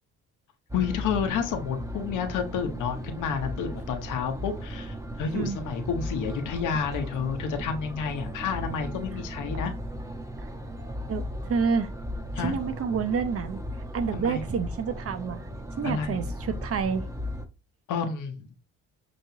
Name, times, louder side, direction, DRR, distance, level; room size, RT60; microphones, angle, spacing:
voice 1, 0.7-9.7 12.3-12.5 14.1-14.4 15.8-16.2 17.9-18.5, left 6 dB, 85° left, 0.9 m, -30 dB
sound 1, 0.7-17.4, equal, 10° right, 0.9 m, -36 dB
voice 2, 11.1-11.9 12.4-13.6 13.9-15.5 15.8-17.1, right 6 dB, 50° right, 0.8 m, -28 dB
5.7 x 3.1 x 2.8 m
cardioid pair, 90°, 30 cm